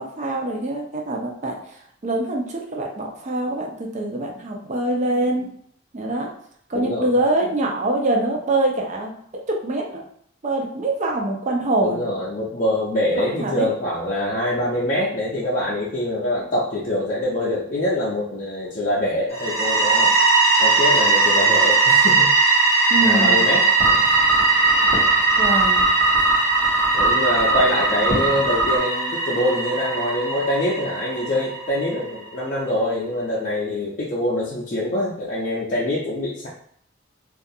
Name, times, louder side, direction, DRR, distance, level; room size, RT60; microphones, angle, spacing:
voice 1, 0.0-1.5 2.0-5.5 5.9-6.3 6.7-9.2 9.5-10.0 10.4-12.1 13.1-13.7 22.9-23.4 25.4-25.9, right 2 dB, 40° right, 0 dB, 0.4 m, -24 dB
voice 2, 6.7-7.1 11.8-20.1 20.6-22.3 23.0-24.1 26.9-36.5, left 1 dB, 40° left, -7 dB, 0.5 m, -24 dB
sound 1, 19.3-32.0, right 3 dB, 55° right, 1.0 m, -19 dB
sound 2, 23.8-28.8, right 2 dB, 90° right, 1.0 m, -23 dB
2.3 x 2.3 x 2.6 m, 0.64 s
head